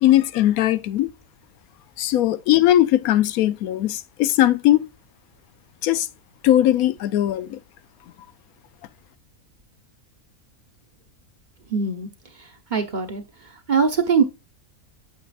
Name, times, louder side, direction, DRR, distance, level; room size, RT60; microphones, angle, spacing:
voice 1, 0.0-1.1 2.0-4.9 5.8-6.1 6.4-7.6, left 13 dB, 85° left, 1.1 m, -19 dB
voice 2, 11.7-12.1 12.4-14.2, right 5 dB, 40° right, 0.9 m, -23 dB
8.5 x 7.6 x 2.4 m
omnidirectional pair, 1.5 m